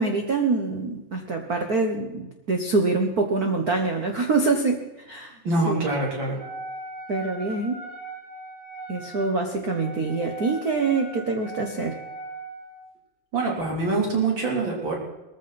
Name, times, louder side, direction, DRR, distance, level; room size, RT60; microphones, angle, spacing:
voice 1, 0.0-5.3 5.6-5.8 7.1-7.8 8.9-12.0, right 3 dB, 75° right, 3 dB, 0.8 m, -25 dB
voice 2, 5.4-6.4 13.3-15.0, right 3 dB, 35° right, -2 dB, 4.1 m, -24 dB
Wind instrument woodwind instrument, 6.4-12.8, right 3 dB, 15° left, 4.7 m, -39 dB
20.0 x 14.5 x 4.3 m, 1.0 s
omnidirectional pair, 3.6 m